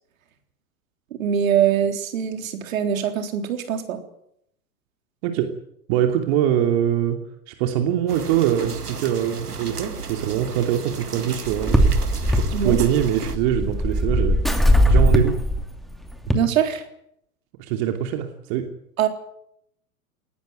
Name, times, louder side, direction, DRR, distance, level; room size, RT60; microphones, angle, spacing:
voice 1, 1.1-4.0 12.5-12.8 16.3-16.8 19.0-19.1, right 9 dB, 60° right, 6 dB, 3.8 m, -23 dB
voice 2, 5.9-7.2 7.5-11.8 12.3-15.3 17.6-18.7, right 10 dB, 45° right, 5 dB, 2.9 m, -23 dB
sound 1, 8.1-13.4, right 5 dB, 90° right, 2.1 m, -34 dB
sound 2, 11.5-16.3, equal, ahead, 2.6 m, -19 dB
20.0 x 17.5 x 9.5 m, 0.74 s
figure-of-eight pair, 100°, 45 cm